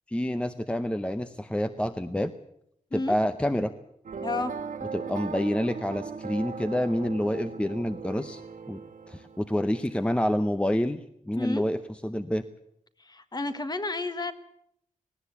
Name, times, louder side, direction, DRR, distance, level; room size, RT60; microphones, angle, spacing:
voice 1, 0.1-2.3 2.9-3.7 4.9-8.4 8.7-8.8 9.1-11.0 11.3-12.4, left 1 dB, 10° left, 10 dB, 0.8 m, -28 dB
sound 1, 4.0-10.3, right 5 dB, 65° right, 1.9 m, -39 dB
voice 2, 4.2-4.5 11.3-11.6 13.0-14.3, left 2 dB, 30° left, 10 dB, 1.6 m, -31 dB
18.5 x 18.0 x 8.4 m, 0.71 s
wide cardioid pair, 135°, 14 cm